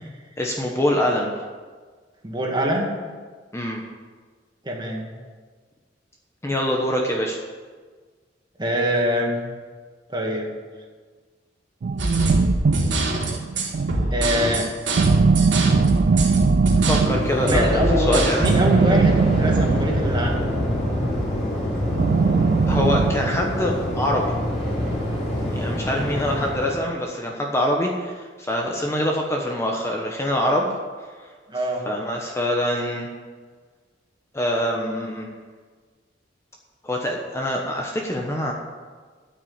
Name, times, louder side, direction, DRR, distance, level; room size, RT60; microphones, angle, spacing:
voice 1, 0.4-1.3 3.5-3.8 6.4-7.4 16.8-18.4 22.7-24.3 25.5-30.7 31.9-33.1 34.3-35.3 36.8-38.5, equal, 15° left, 0 dB, 1.1 m, -24 dB
voice 2, 2.2-2.9 4.6-5.1 8.6-9.4 10.1-10.5 14.1-14.7 17.4-20.5 31.5-31.8, equal, 25° right, 0 dB, 2.1 m, -24 dB
sound 1, 11.8-14.2 15.0-17.5 18.4-20.4 21.9-23.6, right 4 dB, 50° right, 0.3 m, -20 dB
sound 2, 12.0-18.5, right 1 dB, 70° right, 3.1 m, -24 dB
Waves surf, 17.2-26.8, equal, 40° left, 4.6 m, -26 dB
13.0 x 6.2 x 8.7 m, 1.5 s
head